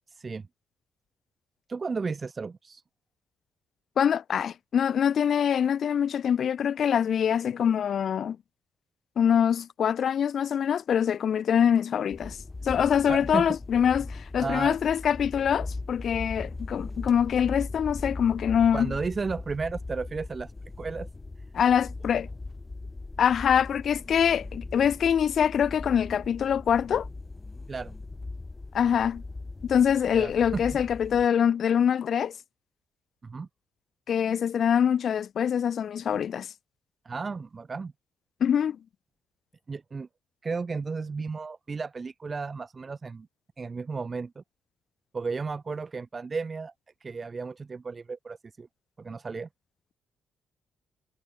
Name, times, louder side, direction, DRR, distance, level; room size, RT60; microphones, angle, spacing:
voice 1, 0.1-0.5 1.7-2.8 13.0-13.5 14.4-14.8 18.7-20.5 20.8-21.1 27.7-27.9 30.2-30.6 33.2-33.5 37.0-37.9 39.7-40.1 40.4-43.3 43.6-44.4 45.1-46.7 47.0-48.7 49.0-49.5, right 4 dB, 35° right, 0.7 m, -33 dB
voice 2, 4.0-8.4 9.2-12.4 12.6-18.9 21.5-22.3 23.2-27.1 28.7-29.2 29.7-32.3 34.1-36.5 38.4-38.8, left 8 dB, 60° left, 0.5 m, -24 dB
sound 1, 12.1-31.3, left 3 dB, 20° left, 3.1 m, -39 dB
cardioid pair, 90°, 0 cm